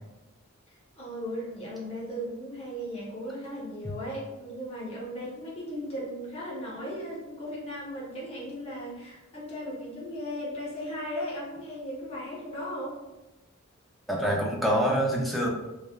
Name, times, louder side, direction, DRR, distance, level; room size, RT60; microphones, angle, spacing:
voice 1, 1.0-13.0, equal, 30° left, -6 dB, 0.8 m, -36 dB
voice 2, 14.1-15.5, equal, ahead, -3 dB, 0.3 m, -26 dB
3.1 x 2.2 x 2.3 m, 1.0 s
head